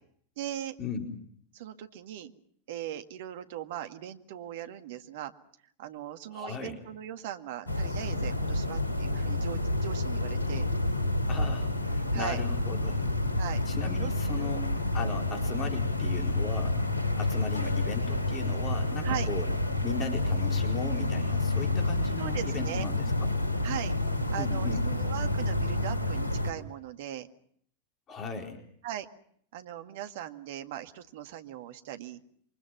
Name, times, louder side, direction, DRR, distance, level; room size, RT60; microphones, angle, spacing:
voice 1, 0.4-0.8 1.5-2.3 2.7-5.3 5.8-10.7 12.1-12.4 13.4-13.6 14.0-14.5 19.0-19.3 22.2-22.9 23.6-23.9 24.3-27.3 28.8-29.1 29.5-32.2, right 11 dB, 55° right, 8 dB, 1.9 m, -39 dB
voice 2, 6.3-6.8 11.3-13.1 13.7-16.8 17.2-19.5 19.8-23.3 24.4-24.8 28.1-28.6, left 4 dB, 25° left, 3 dB, 4.4 m, -37 dB
sound 1, 7.7-26.5, left 2 dB, 80° left, 3.2 m, -29 dB
28.5 x 24.5 x 6.0 m, 0.64 s
figure-of-eight pair, 90°, 0 cm